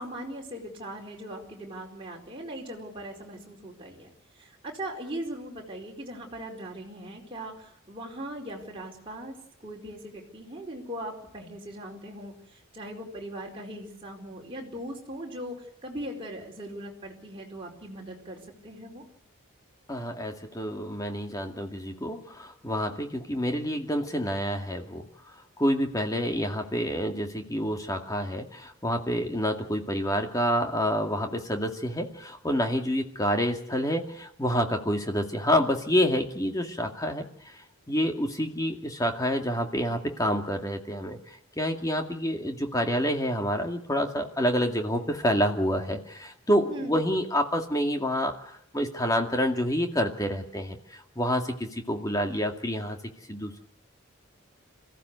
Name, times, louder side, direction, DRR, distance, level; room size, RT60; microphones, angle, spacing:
voice 1, 0.0-4.1 4.4-9.3 9.6-19.0 46.7-46.9, right 1 dB, 25° right, -2 dB, 4.6 m, -39 dB
voice 2, 19.9-25.1 25.6-37.5 37.9-53.0 53.3-53.6, equal, 15° left, 3 dB, 2.2 m, -28 dB
27.0 x 15.5 x 8.2 m, 0.67 s
head